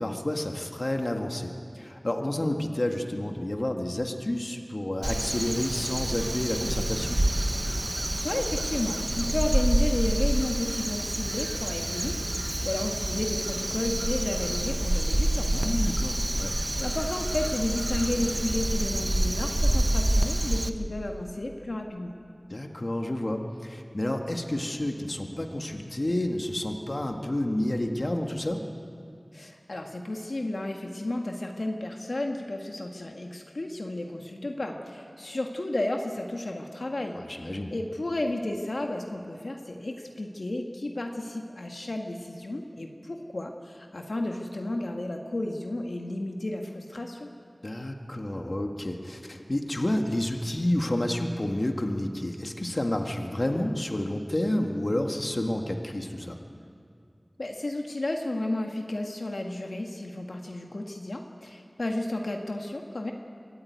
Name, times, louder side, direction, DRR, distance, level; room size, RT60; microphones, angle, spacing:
voice 1, 0.0-7.2 15.5-16.5 22.5-28.6 37.1-37.7 47.6-56.4, left 1 dB, 50° left, 3 dB, 1.7 m, -30 dB
Crow, 5.0-20.7, right 1 dB, 40° right, 1.0 m, -27 dB
voice 2, 8.2-16.0 16.4-16.5 16.8-22.2 29.3-47.3 57.4-63.1, left 1 dB, 85° left, 2 dB, 1.6 m, -32 dB
24.5 x 14.0 x 9.4 m, 2.3 s
wide cardioid pair, 50°, 0 cm